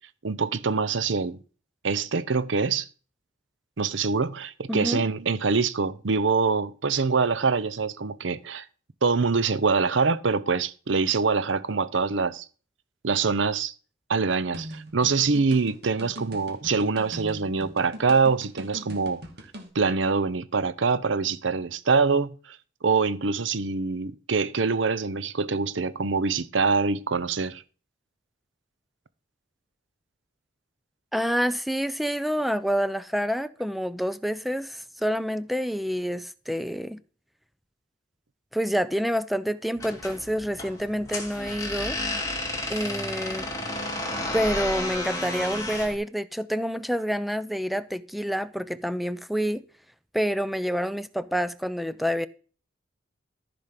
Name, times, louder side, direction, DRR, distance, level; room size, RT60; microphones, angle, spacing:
voice 1, 0.2-1.4 1.8-2.9 3.8-8.6 9.0-12.5 13.0-13.7 14.1-19.2 19.7-22.6 22.8-27.6, right 4 dB, 80° right, 0.8 m, -24 dB
voice 2, 4.7-5.0 31.1-37.0 38.5-42.0 42.7-43.5 44.3-49.6 50.1-52.3, equal, ahead, 0.5 m, -28 dB
sound 1, 14.5-19.7, equal, 60° right, 2.3 m, -41 dB
sound 2, 39.7-46.0, left 2 dB, 15° left, 2.3 m, -32 dB
14.0 x 5.2 x 5.9 m
head